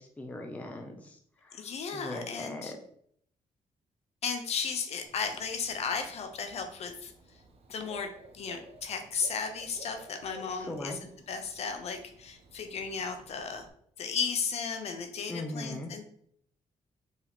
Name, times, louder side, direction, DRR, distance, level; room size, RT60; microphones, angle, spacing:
voice 1, 0.0-1.6 1.9-2.8 10.5-11.0 15.3-15.9, left 1 dB, 10° left, 3 dB, 0.5 m, -40 dB
voice 2, 1.5-2.7 4.2-7.1 7.7-13.7 14.0-16.0, left 5 dB, 55° left, 6 dB, 0.6 m, -35 dB
Bird / Cricket, 5.0-13.7, right 2 dB, 50° right, 0.6 m, -55 dB
4.7 x 3.0 x 3.4 m, 0.65 s
wide cardioid pair, 165°, 13 cm